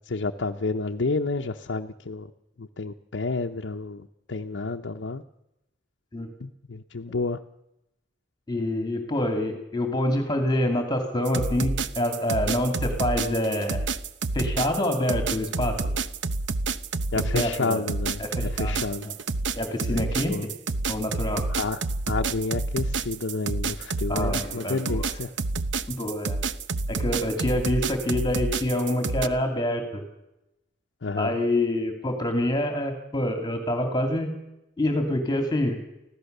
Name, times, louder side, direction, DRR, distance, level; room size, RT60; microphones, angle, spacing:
voice 1, 0.1-2.3 2.6-4.0 4.3-5.2 6.4-7.4 17.1-19.1 19.9-20.5 21.5-21.8 22.1-25.3 31.0-31.4, left 3 dB, 80° left, 3 dB, 0.8 m, -30 dB
voice 2, 8.5-13.9 14.3-15.8 17.1-17.8 18.2-19.1 19.6-20.5 20.9-21.4 24.1-25.1 26.0-26.4 26.9-30.0 31.2-34.3 34.8-35.8, left 1 dB, 25° left, 4 dB, 2.5 m, -26 dB
sound 1, 11.2-29.3, right 3 dB, 80° right, 0.8 m, -29 dB
25.0 x 16.0 x 6.7 m, 0.91 s
head